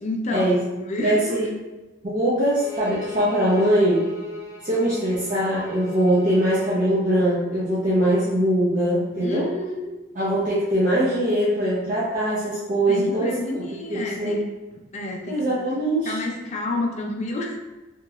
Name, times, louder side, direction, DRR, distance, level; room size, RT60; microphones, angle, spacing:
voice 1, 0.0-1.5 9.2-9.9 12.9-14.4 14.9-15.7 16.0-17.6, left 2 dB, 35° left, 0 dB, 0.4 m, -30 dB
voice 2, 1.0-1.5 2.0-4.1 4.6-9.5 10.1-13.6 13.9-14.4 15.3-16.2, right 1 dB, 40° right, -9 dB, 0.6 m, -22 dB
Bowed string instrument, 2.5-6.8, left 4 dB, 15° left, 0.8 m, -38 dB
2.9 x 2.9 x 2.3 m, 1.1 s
head